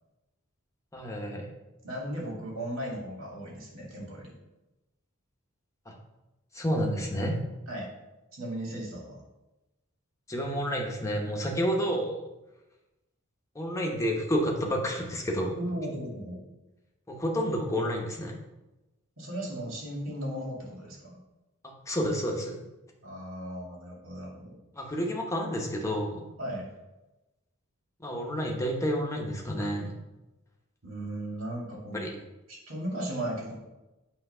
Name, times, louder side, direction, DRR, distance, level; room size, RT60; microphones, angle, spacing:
voice 1, 0.9-1.5 5.9-6.0 6.5-7.4 10.3-12.2 13.5-15.5 17.1-18.3 21.6-22.6 24.8-26.2 28.0-29.9 31.9-32.1, equal, 15° left, 0 dB, 1.0 m, -30 dB
voice 2, 1.8-4.3 7.7-7.9 8.3-9.2 15.5-16.4 19.2-21.1 23.0-24.6 26.4-26.7 30.8-32.1 32.5-33.6, right 1 dB, 70° right, -2 dB, 2.2 m, -36 dB
8.5 x 3.0 x 5.5 m, 1.0 s
head